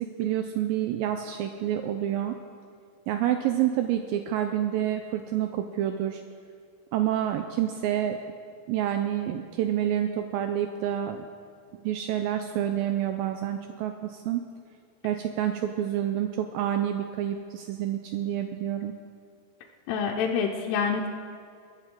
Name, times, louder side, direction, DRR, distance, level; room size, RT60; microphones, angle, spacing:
voice 1, 0.0-2.4 3.1-6.2 6.9-8.2 8.7-11.3 11.8-14.4 15.0-18.9, right 11 dB, 85° right, 6 dB, 2.0 m, -28 dB
voice 2, 19.9-21.1, left 6 dB, 85° left, 0 dB, 2.9 m, -27 dB
22.0 x 11.0 x 3.8 m, 2.3 s
omnidirectional pair, 4.7 m